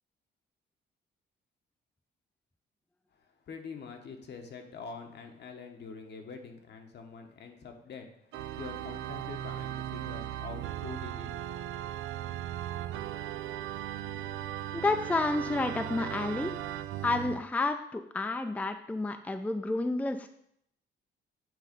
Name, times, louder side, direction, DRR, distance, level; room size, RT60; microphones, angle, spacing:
voice 1, 3.1-11.3, left 5 dB, 60° left, 4 dB, 1.1 m, -45 dB
Organ, 8.3-17.4, right 12 dB, 85° right, 0.4 m, -37 dB
voice 2, 14.7-16.5 17.0-20.3, left 2 dB, 10° left, 7 dB, 0.4 m, -30 dB
7.8 x 3.1 x 5.2 m, 0.70 s
cardioid pair, 90°, 20 cm